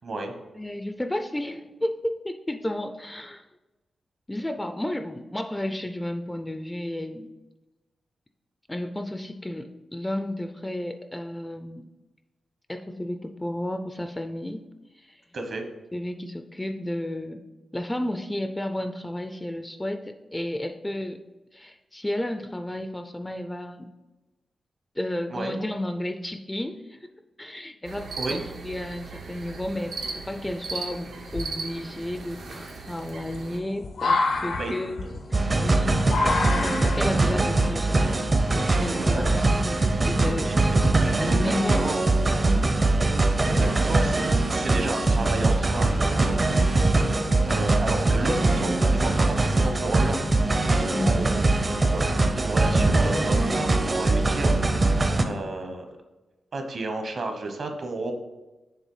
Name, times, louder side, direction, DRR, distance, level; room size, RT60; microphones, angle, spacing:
voice 1, 0.0-0.3 15.3-15.6 25.3-25.5 28.2-28.4 34.5-34.7 39.1-39.2 40.2-40.6 41.3-42.0 43.4-44.2 44.5-46.4 47.5-50.2 51.0-51.5 51.9-54.6 55.2-55.8 56.5-58.1, right 2 dB, 55° right, 5 dB, 1.1 m, -32 dB
voice 2, 0.6-3.4 4.3-7.3 8.7-11.9 12.7-14.7 15.0-15.2 15.9-17.4 17.7-21.2 21.5-23.9 25.0-27.0 27.4-30.0 30.3-35.0 35.5-36.1 36.8-38.3 38.5-40.5 41.2-42.0 42.3-42.7 43.5-44.2 46.3-46.7 50.9-51.3, left 1 dB, 10° left, 7 dB, 0.4 m, -32 dB
sound 1, 27.8-33.6, right 4 dB, 90° right, 1.2 m, -37 dB
sound 2, 29.4-30.0 30.7-30.8 31.3-39.3, left 3 dB, 90° left, 0.9 m, -30 dB
sound 3, 35.3-55.2, right 2 dB, 30° right, 0.6 m, -22 dB
7.2 x 3.3 x 5.5 m, 1.1 s
wide cardioid pair, 130°, 0 cm